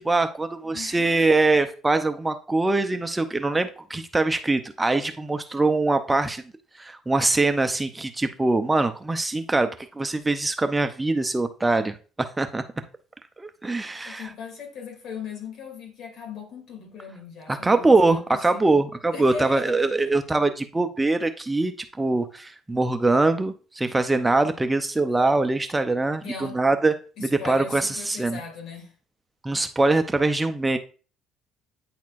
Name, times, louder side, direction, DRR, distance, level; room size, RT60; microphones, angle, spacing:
voice 1, 0.0-6.4 6.7-9.7 10.0-12.6 13.4-14.3 17.5-26.9 27.2-28.4 29.4-30.8, right 2 dB, 15° right, 0.5 m, -23 dB
voice 2, 0.7-1.5 14.0-18.8 19.1-19.8 26.2-26.6 27.2-28.9, left 5 dB, 60° left, 2.5 m, -38 dB
9.3 x 4.3 x 2.5 m
cardioid pair, 95°, 0 cm